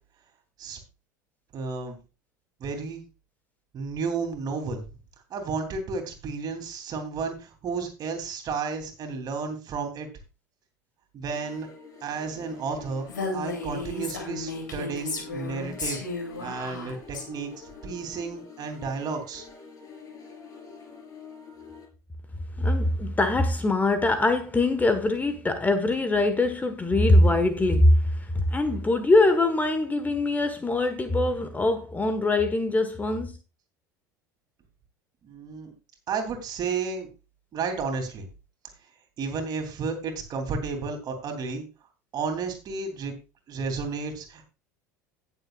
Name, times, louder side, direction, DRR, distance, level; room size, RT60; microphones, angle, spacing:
voice 1, 1.5-2.0 2.6-3.0 3.7-4.8 5.3-10.1 11.1-11.7 12.0-13.0 13.3-16.0 16.4-17.5 17.8-19.4 35.2-35.7 36.1-37.1 37.5-38.3 39.2-41.6 42.1-43.1 43.5-44.5, right 5 dB, 40° right, 3.1 m, -32 dB
sound 1, 11.3-21.9, left 5 dB, 40° left, 4.1 m, -46 dB
Female speech woman speaking, 13.1-17.2, left 3 dB, 80° left, 2.8 m, -34 dB
voice 2, 22.6-33.4, left 2 dB, 15° left, 1.4 m, -22 dB
17.5 x 7.1 x 2.4 m
figure-of-eight pair, 70°, 10 cm